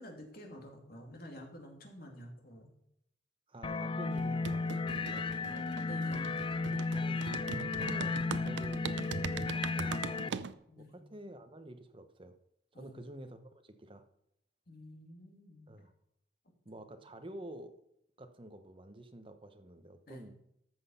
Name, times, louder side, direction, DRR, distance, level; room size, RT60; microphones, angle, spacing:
voice 1, 0.0-2.7 5.9-6.3 10.7-11.0 12.7-13.0 14.7-15.9 16.8-16.9 20.1-20.3, equal, 50° left, 2.6 m, -50 dB
voice 2, 3.5-5.8 6.9-7.3 7.7-12.4 12.7-14.0 15.7-15.9 16.6-17.8 18.2-20.3, right 1 dB, 25° right, 0.9 m, -49 dB
sound 1, 3.6-10.3, left 3 dB, 25° left, 0.4 m, -34 dB
sound 2, 4.1-10.5, right 5 dB, 65° right, 0.6 m, -41 dB
13.5 x 6.3 x 5.6 m
head